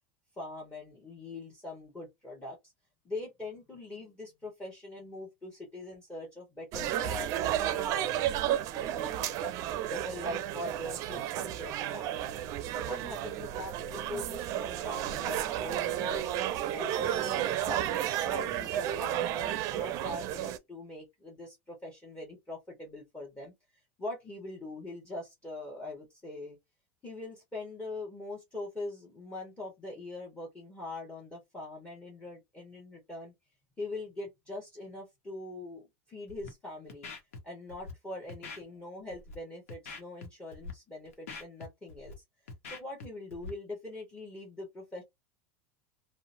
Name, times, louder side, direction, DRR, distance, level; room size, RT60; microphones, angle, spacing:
voice 1, 0.4-2.6 3.0-9.5 9.9-12.3 12.7-16.3 16.7-23.5 24.0-26.6 27.0-33.3 33.8-37.1 37.4-42.1 42.6-45.0, left 2 dB, 15° left, 1.1 m, -42 dB
sound 1, 6.7-20.6, right 12 dB, 50° right, 0.4 m, -32 dB
Scratching (performance technique), 36.3-36.5 36.9-37.4 37.7-37.9 38.3-38.6 39.1-39.3 39.7-40.3 40.5-40.7 41.1-42.1 42.5-43.1 43.3-43.5, left 4 dB, 85° left, 0.9 m, -43 dB
2.7 x 2.1 x 2.6 m
supercardioid pair, 115°, 7 cm